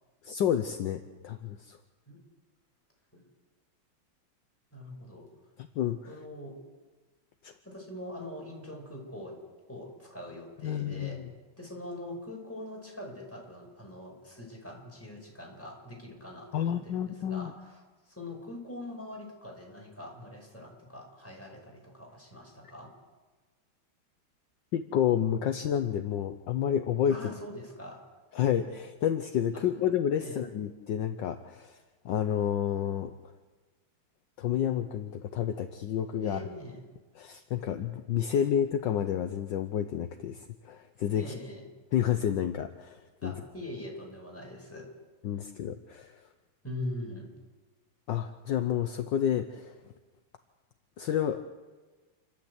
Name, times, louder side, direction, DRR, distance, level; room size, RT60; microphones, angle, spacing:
voice 1, 0.2-1.8 5.7-6.0 7.4-7.5 10.6-11.3 16.5-17.5 24.7-27.2 28.3-31.8 32.0-33.1 34.4-36.4 37.2-41.3 41.9-43.3 45.2-46.2 48.1-49.7 51.0-51.4, left 9 dB, 70° left, 8 dB, 1.4 m, -30 dB
voice 2, 4.7-5.3 6.1-6.6 7.6-9.4 9.7-11.2 11.6-17.8 18.1-22.9 27.1-28.0 29.5-29.6 30.2-30.4 36.2-36.8 41.1-41.7 43.2-44.9 46.6-47.3, left 1 dB, 5° left, -1 dB, 5.5 m, -42 dB
28.5 x 12.0 x 8.1 m, 1.3 s
omnidirectional pair, 2.2 m